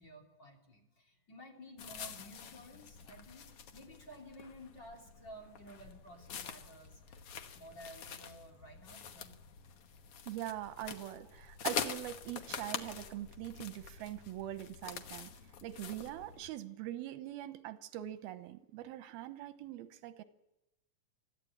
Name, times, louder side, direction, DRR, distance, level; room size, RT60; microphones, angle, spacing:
voice 1, 0.0-7.3 7.5-9.4, equal, 30° left, 1 dB, 3.3 m, -53 dB
sound 1, 1.8-16.5, left 7 dB, 65° left, 1.5 m, -45 dB
voice 2, 10.3-15.3 15.6-20.2, right 13 dB, 90° right, 11 dB, 2.9 m, -43 dB
24.5 x 14.5 x 8.8 m, 0.92 s
omnidirectional pair, 4.3 m